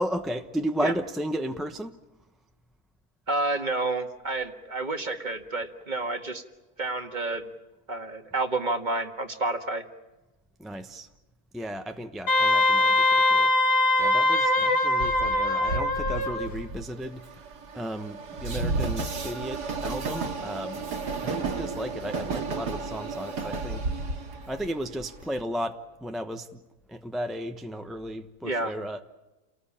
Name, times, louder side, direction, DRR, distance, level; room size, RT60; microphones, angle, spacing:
voice 1, 0.0-1.9 10.6-11.1 11.5-13.5 14.0-17.4 17.7-20.9 21.2-23.8 24.5-26.6 26.9-29.0, equal, ahead, 6 dB, 0.8 m, -34 dB
voice 2, 3.3-6.4 6.8-7.5 7.9-9.8 28.4-28.7, right 2 dB, 30° right, 6 dB, 1.7 m, -29 dB
Wind instrument woodwind instrument, 12.3-16.5, left 2 dB, 75° left, 2.6 m, -22 dB
Train, 15.0-25.4, right 3 dB, 85° right, 2.4 m, -32 dB
29.5 x 19.5 x 8.7 m, 1.1 s
omnidirectional pair, 1.7 m